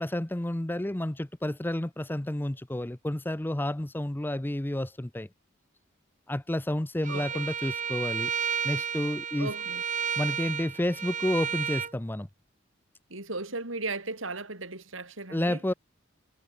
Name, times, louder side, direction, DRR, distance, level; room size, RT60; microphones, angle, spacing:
voice 1, 0.0-5.3 6.3-8.3 8.6-9.5 10.2-12.3 15.3-15.7, left 1 dB, 10° left, 0.6 m, -30 dB
Bowed string instrument, 7.0-11.9, right 7 dB, 40° right, 1.8 m, -32 dB
voice 2, 7.1-7.5 9.4-9.8 13.1-15.6, right 3 dB, 75° right, 5.7 m, -36 dB
head